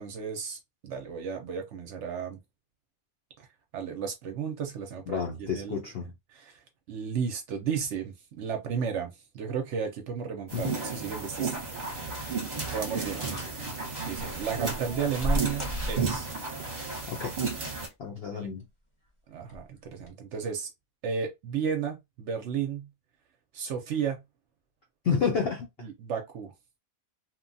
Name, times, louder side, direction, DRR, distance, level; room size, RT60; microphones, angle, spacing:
voice 1, 0.0-2.4 3.4-3.5 3.7-5.8 6.3-6.6 6.9-12.3 12.6-13.7 14.0-16.3 18.3-18.5 19.3-20.7 21.0-22.9 23.5-24.2 25.8-26.5, right 7 dB, 65° right, 0.8 m, -34 dB
voice 2, 5.1-6.1 10.5-10.7 17.1-17.3 18.0-18.6 25.0-25.9, left 6 dB, 65° left, 0.6 m, -30 dB
sound 1, 10.5-17.9, right 4 dB, 40° right, 0.8 m, -33 dB
sound 2, 12.6-13.0 13.3-13.6 14.2-16.4 17.6-18.1 18.6-18.7 19.4-19.6 20.0-20.1, equal, 25° left, 0.8 m, -35 dB
2.9 x 2.2 x 2.5 m
omnidirectional pair, 1.5 m